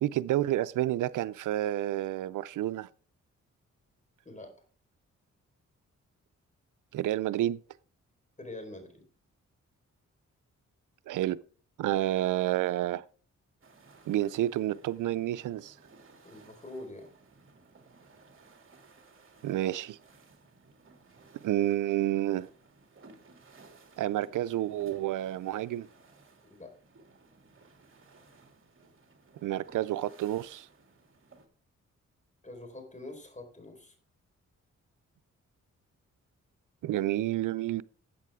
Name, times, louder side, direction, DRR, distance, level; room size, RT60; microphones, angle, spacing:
voice 1, 0.0-2.9 6.9-7.6 11.1-11.4 11.8-13.0 14.1-15.7 19.4-20.0 21.4-22.5 24.0-25.9 29.4-30.7 36.8-37.8, right 13 dB, 85° right, 0.5 m, -29 dB
voice 2, 4.2-4.6 8.4-9.0 16.2-17.1 26.6-26.7 32.4-33.9, left 2 dB, 25° left, 4.4 m, -45 dB
sound 1, 13.6-31.5, right 3 dB, 40° right, 2.6 m, -58 dB
13.5 x 8.4 x 3.6 m
cardioid pair, 65°, 30 cm